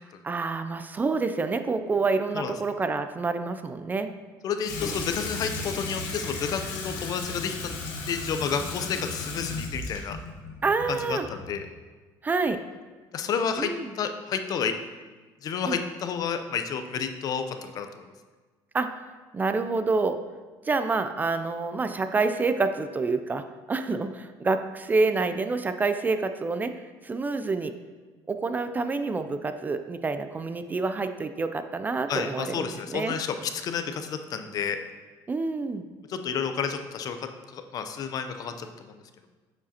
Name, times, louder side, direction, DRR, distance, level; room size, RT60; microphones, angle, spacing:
voice 1, 0.2-4.1 10.6-11.3 12.2-12.6 13.6-13.9 15.6-15.8 18.7-19.0 19.3-20.2 20.6-26.7 27.0-27.7 28.3-33.2 35.3-35.9, right 3 dB, 20° right, 9 dB, 0.3 m, -27 dB
voice 2, 4.4-7.7 8.1-10.2 11.1-11.6 13.1-13.7 14.0-14.7 15.4-18.0 32.1-34.8 36.1-38.7, left 6 dB, 50° left, 8 dB, 0.6 m, -30 dB
Water tap faucet / Sink (filling or washing), 4.6-11.7, left 3 dB, 85° left, 1.2 m, -35 dB
9.0 x 5.0 x 2.8 m, 1.4 s
cardioid pair, 120°, 8 cm